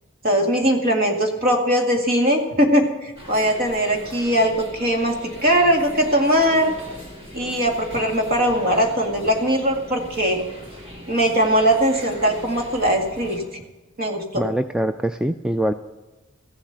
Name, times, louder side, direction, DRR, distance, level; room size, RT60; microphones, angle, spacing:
voice 1, 0.2-6.7 7.3-10.4 11.1-13.4 14.0-14.4, equal, 45° right, 3 dB, 2.0 m, -20 dB
sound 1, 3.1-13.4, equal, 30° right, 3.9 m, -40 dB
voice 2, 14.3-15.7, right 1 dB, 5° right, 9 dB, 0.3 m, -23 dB
15.0 x 7.3 x 7.9 m, 1.1 s
head